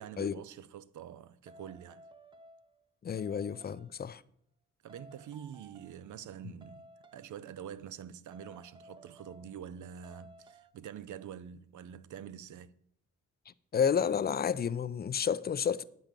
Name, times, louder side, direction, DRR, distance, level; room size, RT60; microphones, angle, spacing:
voice 1, 0.0-2.0 4.8-6.9 7.1-12.7, right 9 dB, 90° right, 0.5 m, -46 dB
sound 1, 1.5-2.9 3.2-4.1 4.9-6.1 6.6-7.3 8.3-9.7 10.0-10.7, equal, 15° right, 0.5 m, -56 dB
voice 2, 3.0-4.2 13.7-15.8, left 7 dB, 35° left, 0.4 m, -30 dB
9.3 x 5.3 x 7.3 m
wide cardioid pair, 130°, 29 cm